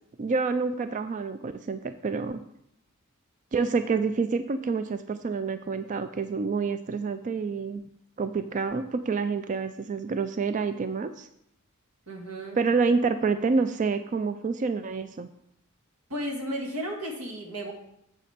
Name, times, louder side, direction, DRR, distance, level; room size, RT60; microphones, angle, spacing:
voice 1, 0.2-2.4 3.5-7.8 8.2-11.3 12.5-15.3, right 4 dB, 35° right, 10 dB, 0.3 m, -28 dB
voice 2, 12.1-12.6 16.1-17.7, equal, 85° right, 1 dB, 1.8 m, -34 dB
8.2 x 7.3 x 4.3 m, 0.79 s
head